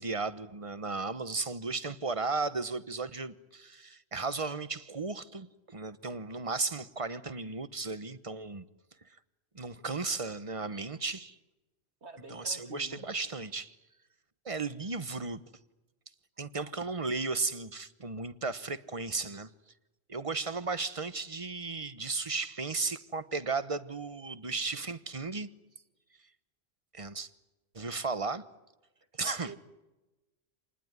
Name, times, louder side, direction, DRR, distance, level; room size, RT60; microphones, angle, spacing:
voice 1, 0.0-8.6 9.5-11.4 12.3-13.8 14.4-15.4 16.4-19.5 20.1-25.5 26.9-27.3 27.7-28.4 29.2-29.5, right 3 dB, 30° right, 1.1 m, -35 dB
voice 2, 12.0-13.0 29.2-29.6, right 2 dB, 65° right, 3.1 m, -47 dB
28.0 x 20.0 x 9.7 m
omnidirectional pair, 1.2 m